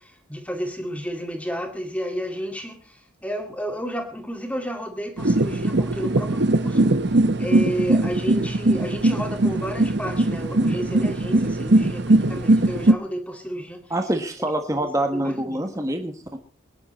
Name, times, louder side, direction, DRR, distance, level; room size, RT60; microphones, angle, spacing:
voice 1, 0.0-6.9 7.4-13.8 14.7-14.9 15.1-15.6, equal, 5° left, 4 dB, 2.3 m, -31 dB
sound 1, 5.2-12.9, right 2 dB, 55° right, 1.0 m, -20 dB
voice 2, 13.9-16.4, right 1 dB, 15° right, 5 dB, 1.4 m, -26 dB
22.0 x 10.5 x 4.3 m, 0.37 s
head